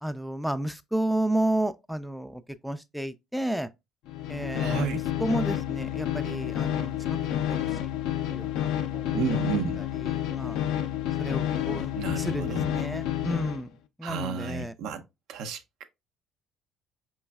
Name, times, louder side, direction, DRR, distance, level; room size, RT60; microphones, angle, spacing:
voice 1, 0.0-3.7 4.3-7.8 8.1-9.4 9.9-10.7 11.2-13.7 14.0-14.7, right 1 dB, ahead, 0.3 m, -32 dB
sound 1, 4.1-13.6, left 11 dB, 70° left, 0.4 m, -30 dB
voice 2, 4.6-5.0 9.1-9.8 12.0-12.7 14.0-15.0 15.3-15.8, right 5 dB, 70° right, 0.5 m, -32 dB
4.5 x 3.1 x 2.3 m
hypercardioid pair, 60°, 0 cm